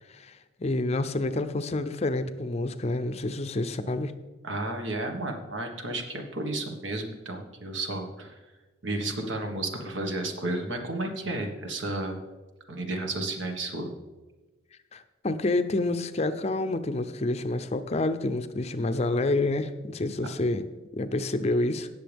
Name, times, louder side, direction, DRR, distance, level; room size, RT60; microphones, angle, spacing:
voice 1, 0.1-4.1 14.9-20.6 20.9-21.9, left 2 dB, 35° left, 10 dB, 0.5 m, -28 dB
voice 2, 4.4-8.4 8.8-12.2 12.7-13.9, right 2 dB, 75° right, 4 dB, 1.6 m, -32 dB
18.0 x 6.9 x 3.5 m, 1.2 s
head